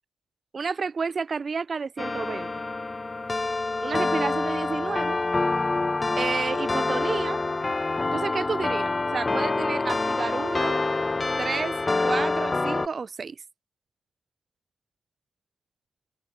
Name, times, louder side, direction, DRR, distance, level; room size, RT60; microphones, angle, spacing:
voice 1, 0.5-2.5 3.8-5.2 6.2-7.4 8.1-10.8 11.4-13.4, right 5 dB, 50° right, 3.6 m, -31 dB
sound 1, 2.0-12.9, left 3 dB, 35° left, 0.4 m, -26 dB
open air
supercardioid pair, 45°, 0 cm